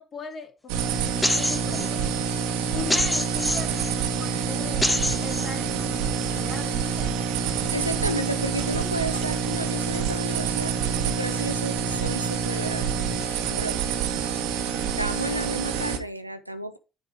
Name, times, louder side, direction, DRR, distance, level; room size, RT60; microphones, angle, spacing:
voice 1, 0.0-2.0 2.7-4.9 5.2-7.3, left 5 dB, 40° left, 2.5 m, -39 dB
sound 1, 0.7-16.0, right 7 dB, 70° right, 1.1 m, -27 dB
sound 2, 1.2-1.9 2.9-3.9 4.8-5.5, left 1 dB, 10° left, 1.2 m, -25 dB
voice 2, 7.4-13.0 13.4-13.8 15.0-16.8, right 1 dB, 90° right, 0.5 m, -32 dB
9.3 x 4.4 x 5.0 m
figure-of-eight pair, 50°, 0 cm